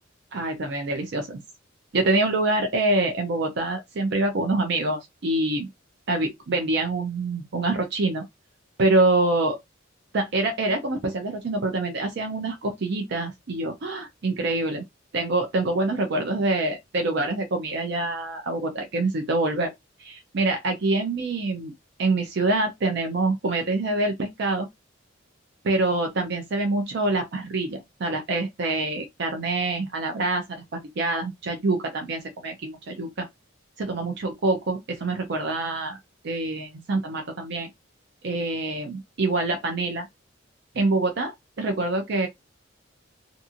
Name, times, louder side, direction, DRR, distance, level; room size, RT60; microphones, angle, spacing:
voice 1, 0.3-1.4 1.9-5.7 6.1-8.2 8.8-9.6 10.1-14.8 15.1-19.7 20.0-21.7 22.0-24.7 25.6-30.4 30.7-33.3 33.8-36.0 36.2-37.7 38.2-40.1 40.7-42.3, right 2 dB, 60° right, 0.5 m, -25 dB
2.6 x 2.4 x 2.7 m
head